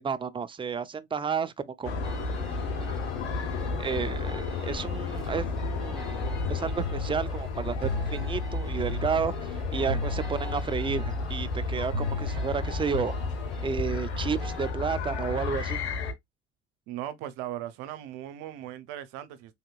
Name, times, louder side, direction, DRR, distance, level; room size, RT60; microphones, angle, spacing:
voice 1, 0.0-2.4 3.8-13.2 13.6-15.9, right 6 dB, 15° right, 0.4 m, -32 dB
sound 1, 1.8-16.1, left 4 dB, 90° left, 0.8 m, -32 dB
sound 2, 2.0-14.7, equal, ahead, 2.3 m, -43 dB
sound 3, 6.2-13.1, left 1 dB, 55° right, 1.6 m, -36 dB
voice 2, 16.9-19.5, right 12 dB, 75° right, 0.7 m, -38 dB
3.5 x 2.9 x 2.3 m
hypercardioid pair, 60°, 33 cm